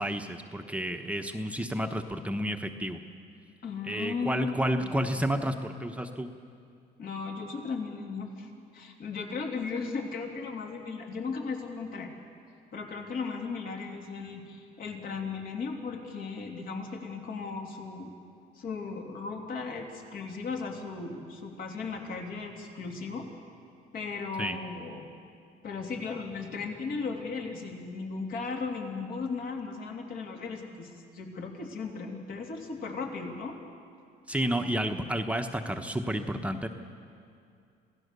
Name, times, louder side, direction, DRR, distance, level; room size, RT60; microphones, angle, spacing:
voice 1, 0.0-3.0 3.8-6.3 24.4-24.6 34.3-36.7, right 1 dB, 10° right, 5 dB, 1.0 m, -31 dB
voice 2, 3.6-5.2 7.0-12.1 12.7-18.1 18.5-23.3 23.9-25.1 25.6-33.6, left 4 dB, 60° left, 1 dB, 3.0 m, -36 dB
27.0 x 17.0 x 6.8 m, 2.4 s
cardioid pair, 110°, 17 cm